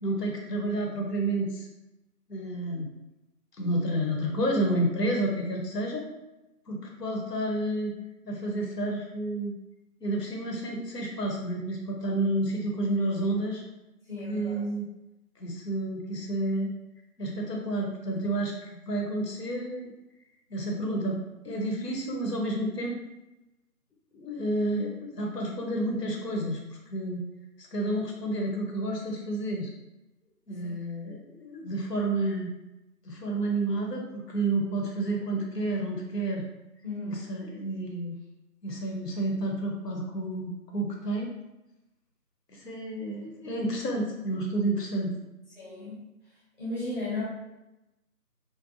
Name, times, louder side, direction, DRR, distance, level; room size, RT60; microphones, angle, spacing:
voice 1, 0.0-1.7 2.3-2.9 3.6-6.1 6.7-8.0 8.2-9.5 10.0-13.6 14.3-14.8 15.4-16.7 17.2-18.5 18.9-19.9 20.5-21.2 21.4-23.0 24.1-26.6 26.9-27.3 27.7-29.7 30.5-32.5 33.0-36.4 37.0-38.1 38.6-41.3 42.5-45.1, right 1 dB, 80° left, 0 dB, 0.9 m, -30 dB
voice 2, 14.1-14.6 30.6-30.7 36.8-37.3 45.6-46.1 46.6-47.2, left 2 dB, 30° left, -10 dB, 0.8 m, -35 dB
2.6 x 2.2 x 2.5 m, 0.96 s
figure-of-eight pair, 170°, 47 cm